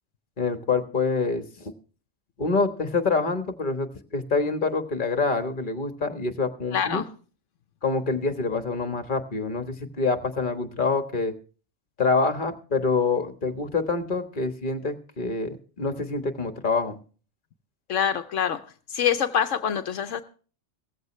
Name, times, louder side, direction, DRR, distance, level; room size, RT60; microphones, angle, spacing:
voice 1, 0.4-1.4 2.4-7.0 7.8-11.3 12.0-17.0, left 4 dB, 40° left, 9 dB, 1.6 m, -26 dB
voice 2, 6.7-7.1 17.9-18.6 18.9-20.2, left 8 dB, 80° left, 9 dB, 1.1 m, -25 dB
17.0 x 14.5 x 3.2 m, 0.38 s
omnidirectional pair, 1.3 m